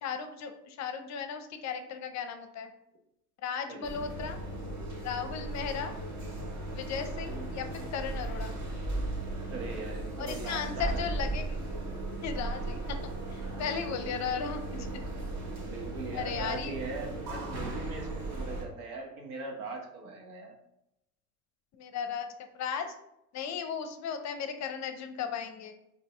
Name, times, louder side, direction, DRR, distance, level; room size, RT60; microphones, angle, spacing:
voice 1, 0.0-2.7 3.4-4.4 5.0-5.9 6.7-8.6 10.2-11.6 12.2-13.0 13.3-15.0 16.1-16.8 21.8-22.3 22.6-22.9 23.3-25.8, left 7 dB, 40° left, 7 dB, 0.6 m, -36 dB
voice 2, 3.7-4.0 9.5-11.0 13.6-14.1 15.7-20.5, right 3 dB, 80° right, 2 dB, 1.0 m, -40 dB
sound 1, 3.8-18.6, right 2 dB, 40° right, 1.4 m, -36 dB
4.0 x 2.8 x 3.5 m, 0.84 s
hypercardioid pair, 70°, 44 cm